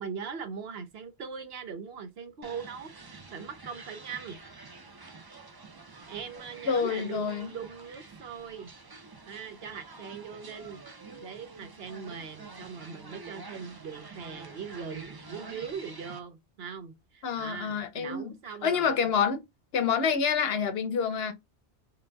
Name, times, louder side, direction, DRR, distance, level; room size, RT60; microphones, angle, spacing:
voice 1, 0.0-4.4 6.1-8.7 9.3-10.8 11.2-19.1, right 6 dB, 65° right, 0.9 m, -40 dB
sound 1, 2.4-16.2, right 3 dB, 35° right, 0.4 m, -48 dB
voice 2, 6.7-7.5 17.2-18.3 18.6-19.4 19.7-21.3, left 6 dB, 65° left, 0.8 m, -27 dB
3.8 x 3.8 x 2.2 m
omnidirectional pair, 1.2 m